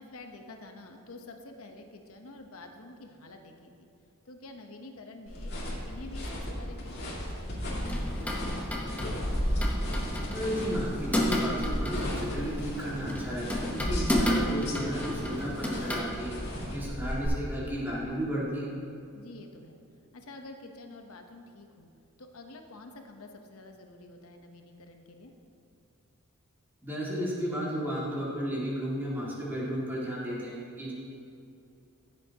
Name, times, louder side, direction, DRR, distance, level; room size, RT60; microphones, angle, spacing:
voice 1, 0.0-3.9 4.2-7.8 16.7-17.0 19.1-19.8 20.1-21.9 22.2-25.3, left 2 dB, 75° left, 4 dB, 1.0 m, -48 dB
sound 1, 5.3-17.3, equal, 50° left, 2.3 m, -34 dB
sound 2, 7.7-16.0, equal, 5° left, 0.9 m, -33 dB
voice 2, 10.3-16.3 16.7-18.7 26.8-30.9, equal, 10° right, -6 dB, 2.1 m, -33 dB
15.0 x 7.7 x 2.9 m, 2.6 s
head